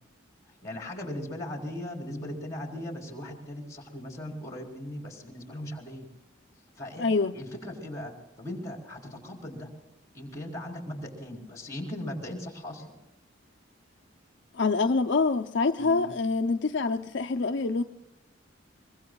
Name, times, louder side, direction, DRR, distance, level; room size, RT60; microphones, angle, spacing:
voice 1, 0.5-6.1 6.8-7.1 7.3-9.7 10.1-13.0 15.8-16.1, left 1 dB, 15° left, 4.1 m, -38 dB
voice 2, 7.0-7.4 14.5-17.8, left 4 dB, 60° left, 0.6 m, -26 dB
24.0 x 23.0 x 2.3 m
head